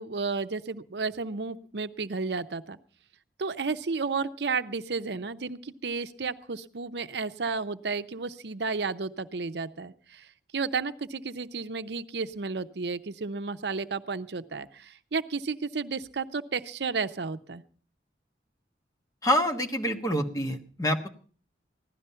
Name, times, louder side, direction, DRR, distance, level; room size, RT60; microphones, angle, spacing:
voice 1, 0.0-2.8 3.4-17.6, right 4 dB, 70° right, 11 dB, 0.7 m, -32 dB
voice 2, 19.2-21.1, equal, 20° left, 5 dB, 1.2 m, -26 dB
16.0 x 12.0 x 5.6 m, 0.43 s
head